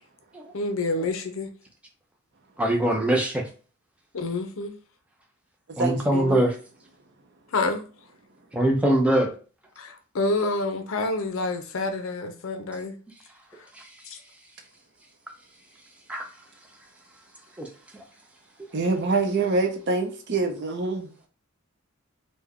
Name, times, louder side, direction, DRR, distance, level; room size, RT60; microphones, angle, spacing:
voice 1, 0.5-1.5 4.1-4.7 7.5-7.9 9.8-13.0 14.1-14.2, left 2 dB, 60° left, 0.6 m, -28 dB
voice 2, 2.6-3.4 5.8-6.6 8.5-9.3 13.7-13.9 16.1-16.3 17.6-17.7, right 1 dB, 5° right, 0.5 m, -22 dB
voice 3, 5.7-6.4 18.7-21.1, right 3 dB, 50° right, 0.6 m, -25 dB
3.3 x 2.1 x 3.5 m
head